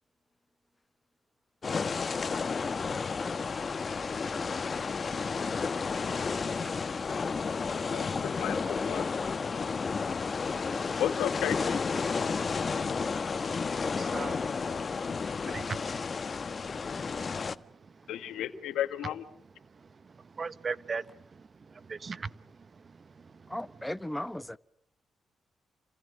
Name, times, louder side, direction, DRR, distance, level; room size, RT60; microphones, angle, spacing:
sound 1, 1.6-17.6, left 5 dB, 50° left, 1.3 m, -32 dB
voice 1, 7.9-9.1 11.0-11.9 18.1-19.2, left 11 dB, 85° left, 1.9 m, -33 dB
voice 2, 13.9-14.4 15.5-16.1 16.6-16.7 17.0-17.7 19.8-22.4 22.8-23.5, right 5 dB, 50° right, 1.2 m, -40 dB
voice 3, 23.5-24.6, left 1 dB, 10° left, 1.1 m, -37 dB
29.5 x 27.0 x 6.8 m
supercardioid pair, 50°, 0 cm